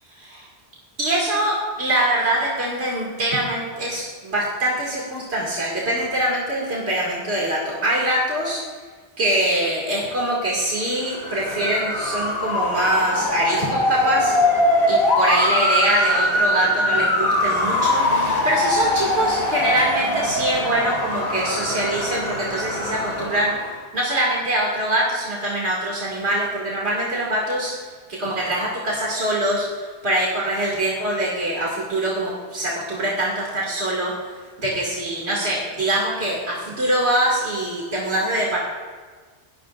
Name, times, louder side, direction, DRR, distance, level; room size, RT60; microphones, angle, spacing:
voice 1, 0.1-0.5 1.0-8.6 9.2-14.4 14.9-23.6 23.9-27.7 28.1-34.3 34.6-38.6, right 1 dB, 80° right, -5 dB, 2.7 m, -23 dB
Motor vehicle (road) / Siren, 11.0-23.7, left 1 dB, 60° left, 3.2 m, -22 dB
23.5 x 19.0 x 2.5 m, 1.5 s
omnidirectional pair, 1.1 m